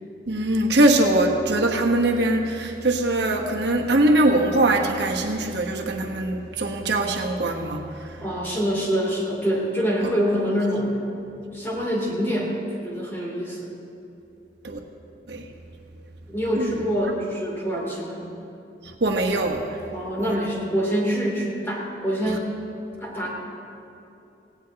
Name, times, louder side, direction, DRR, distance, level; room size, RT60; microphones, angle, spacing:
voice 1, 0.3-8.1 14.6-14.8 15.3-15.5 16.6-16.7 19.0-19.8 20.2-20.4 22.3-22.4, right 1 dB, 75° right, 1 dB, 1.1 m, -22 dB
voice 2, 8.2-10.9 11.5-13.7 16.3-18.2 19.9-22.5 23.0-23.3, equal, 15° left, -4 dB, 2.9 m, -25 dB
17.5 x 17.0 x 2.9 m, 2.7 s
head